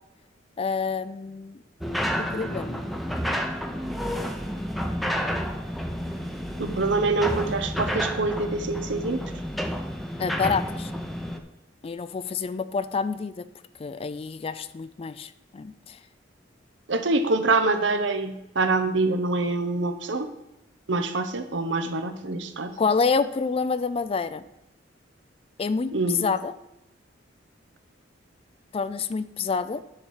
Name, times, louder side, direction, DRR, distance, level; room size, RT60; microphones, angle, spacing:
voice 1, 0.6-1.6 2.2-2.8 10.2-10.9 11.8-13.4 13.8-16.0 22.8-24.4 25.6-25.9 26.2-26.5 28.7-29.8, left 5 dB, 30° left, 14 dB, 0.3 m, -28 dB
sound 1, 1.8-11.4, equal, ahead, 0.7 m, -30 dB
voice 2, 6.6-9.2 16.9-20.3 20.9-22.8 25.9-26.3, right 3 dB, 70° right, 8 dB, 0.9 m, -25 dB
9.8 x 4.3 x 6.4 m, 0.91 s
head